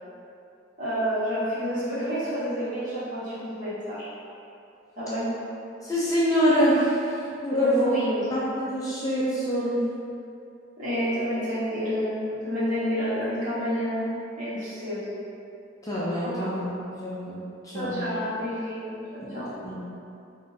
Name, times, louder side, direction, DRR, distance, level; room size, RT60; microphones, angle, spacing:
voice 1, 0.8-4.1 4.9-5.3 7.5-8.4 10.8-15.1 16.2-16.5 17.7-19.5, equal, 40° right, -12 dB, 1.5 m, -29 dB
voice 2, 5.8-7.9 8.3-9.9 15.8-16.7 17.0-17.4 17.6-18.0 19.2-19.3 19.6-19.8, equal, 20° left, -9 dB, 0.6 m, -25 dB
3.6 x 2.6 x 3.9 m, 2.6 s
head